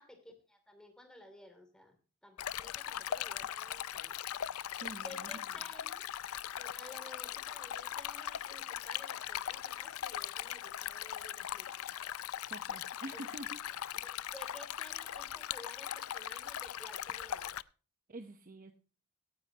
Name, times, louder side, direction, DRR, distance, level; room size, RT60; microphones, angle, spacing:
voice 1, 0.0-2.0 2.2-6.1 6.6-11.7 13.1-13.2 13.9-17.5, left 1 dB, 5° left, 6 dB, 2.7 m, -54 dB
Stream, 2.4-17.6, left 10 dB, 90° left, 0.4 m, -40 dB
voice 2, 4.7-5.3 12.5-13.6 13.9-14.1 18.1-18.7, right 1 dB, 40° right, 7 dB, 0.9 m, -47 dB
17.0 x 9.9 x 2.9 m, 0.37 s
head